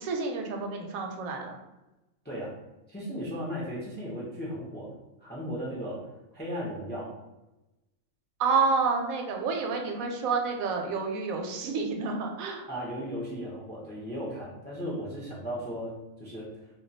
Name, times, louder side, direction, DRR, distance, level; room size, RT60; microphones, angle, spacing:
voice 1, 0.0-1.5 8.4-12.6, right 4 dB, 85° right, 3 dB, 1.0 m, -29 dB
voice 2, 2.9-4.9 5.2-6.0 6.3-7.1 12.7-15.9 16.2-16.5, equal, 15° left, -5 dB, 0.3 m, -36 dB
2.3 x 2.3 x 3.9 m, 1.0 s
omnidirectional pair, 1.4 m